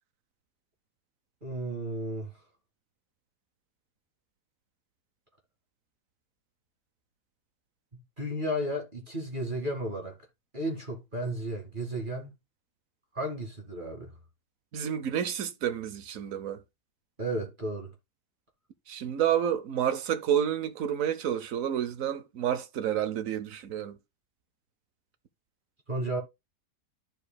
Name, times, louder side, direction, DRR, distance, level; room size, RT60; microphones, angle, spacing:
voice 1, 1.4-2.3 7.9-10.2 10.5-12.3 13.1-14.1 17.2-17.9 25.9-26.2, right 1 dB, 30° right, 2.1 m, -33 dB
voice 2, 14.7-16.6 18.9-24.0, right 9 dB, 60° right, 1.1 m, -29 dB
14.0 x 4.9 x 2.2 m
omnidirectional pair, 1.9 m